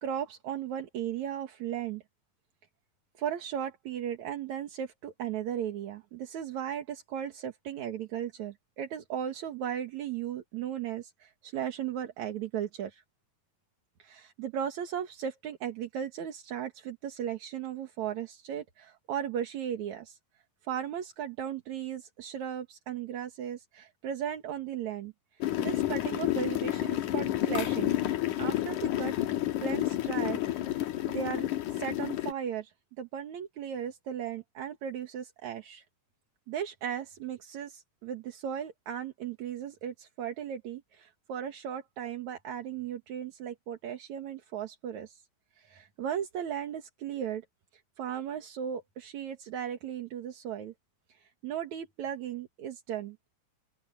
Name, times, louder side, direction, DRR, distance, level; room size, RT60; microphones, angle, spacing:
voice 1, 0.0-2.0 3.2-13.0 14.0-20.2 20.6-28.0 28.4-30.8 31.0-35.8 36.5-45.2 45.6-47.4 47.7-50.7 51.1-53.2, right 9 dB, 75° right, 3.0 m, -36 dB
sound 1, 25.4-32.3, left 14 dB, 90° left, 2.7 m, -30 dB
open air
omnidirectional pair, 3.4 m